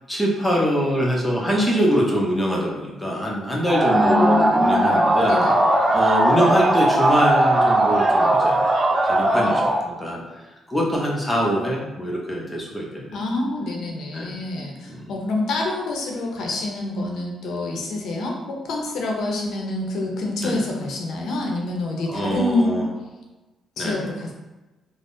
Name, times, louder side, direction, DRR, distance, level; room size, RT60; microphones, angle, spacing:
voice 1, 0.1-5.4 5.9-8.7 9.0-10.2 10.7-13.2 14.1-14.4 14.9-15.1 20.4-20.6 22.1-22.9 23.8-24.0, equal, 10° left, -3 dB, 0.7 m, -24 dB
sound 1, 3.7-9.9, right 1 dB, 30° right, 0.4 m, -18 dB
voice 2, 3.9-5.0 5.3-5.6 13.1-22.8 23.8-24.3, left 2 dB, 75° left, 0 dB, 0.6 m, -26 dB
3.3 x 2.0 x 2.5 m, 1.1 s
cardioid pair, 90°, 0 cm